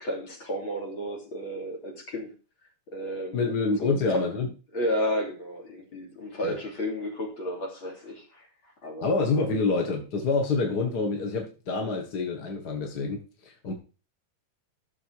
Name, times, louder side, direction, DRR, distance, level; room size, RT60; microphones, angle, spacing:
voice 1, 0.0-2.3 2.9-3.5 3.8-4.3 4.7-9.2 9.6-9.7, equal, 75° left, 3.9 m, -33 dB
voice 2, 3.3-4.5 6.4-6.6 9.0-13.7, left 3 dB, 50° left, 2.2 m, -27 dB
14.0 x 7.0 x 4.7 m
omnidirectional pair, 2.2 m